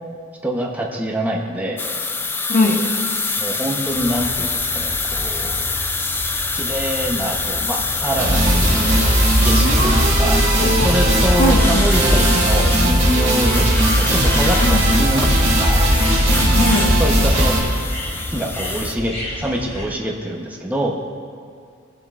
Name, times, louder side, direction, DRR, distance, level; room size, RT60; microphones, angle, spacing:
voice 1, 0.4-1.8 3.4-5.7 6.5-8.9 9.4-15.2 15.6-15.9 17.0-17.6 18.3-21.0, right 1 dB, 10° right, -2 dB, 0.8 m, -25 dB
sound 1, 1.8-18.9, left 3 dB, 10° left, 0.3 m, -26 dB
voice 2, 2.5-2.8 9.6-10.9 11.4-11.6 14.6-14.8 16.3-16.9, left 1 dB, 50° left, -1 dB, 1.3 m, -21 dB
sound 2, 3.9-19.8, equal, 30° left, 1.4 m, -33 dB
sound 3, 8.2-17.6, right 1 dB, 35° right, 2.5 m, -17 dB
17.5 x 7.6 x 2.4 m, 2.2 s
head